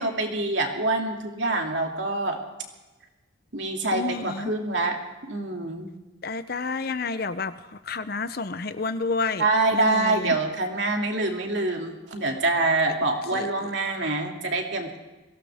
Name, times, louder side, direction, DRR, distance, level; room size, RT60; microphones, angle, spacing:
voice 1, 0.0-2.4 3.5-5.0 5.3-5.9 9.4-15.0, right 2 dB, 65° right, 1 dB, 2.7 m, -25 dB
voice 2, 3.9-4.5 6.2-7.5 7.9-9.4 9.7-10.4 13.3-13.5, left 4 dB, 50° left, 12 dB, 0.7 m, -29 dB
22.5 x 17.0 x 3.6 m, 1.1 s
head